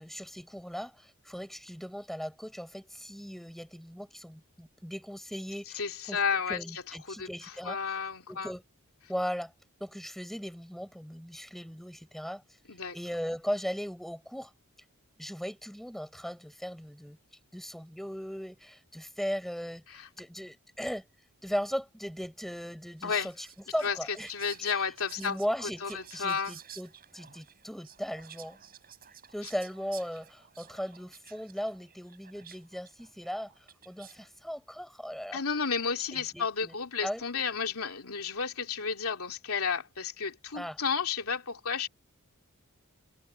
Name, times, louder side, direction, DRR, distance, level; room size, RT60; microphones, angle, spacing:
voice 1, 0.0-6.2 6.5-7.8 8.3-8.6 9.1-9.5 9.8-12.4 12.9-14.5 15.2-17.2 17.5-21.1 21.4-23.5 23.7-24.3 24.6-24.9 25.2-28.6 29.3-35.4 36.1-36.8 37.0-37.2 40.5-40.8, equal, ahead, 5.8 m, -38 dB
voice 2, 5.7-7.3 7.6-8.5 12.7-12.9 19.9-20.1 23.0-23.3 23.8-24.0 24.3-25.4 25.8-26.6 35.3-41.9, left 6 dB, 70° left, 3.0 m, -32 dB
Whispering, 23.0-34.3, right 9 dB, 45° right, 7.9 m, -53 dB
head